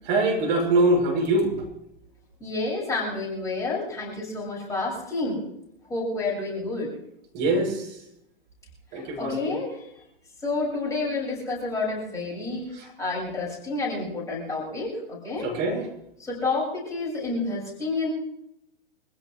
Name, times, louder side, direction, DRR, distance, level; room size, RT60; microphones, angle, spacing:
voice 1, 0.1-1.5 7.3-7.9 8.9-9.6 15.4-15.8, right 2 dB, 40° right, 0 dB, 7.4 m, -23 dB
voice 2, 2.4-5.4 5.9-6.9 8.9-9.9 10.4-15.5 16.2-18.1, left 3 dB, 10° left, -6 dB, 6.5 m, -29 dB
25.5 x 16.5 x 3.2 m, 0.79 s
figure-of-eight pair, 110°, 31 cm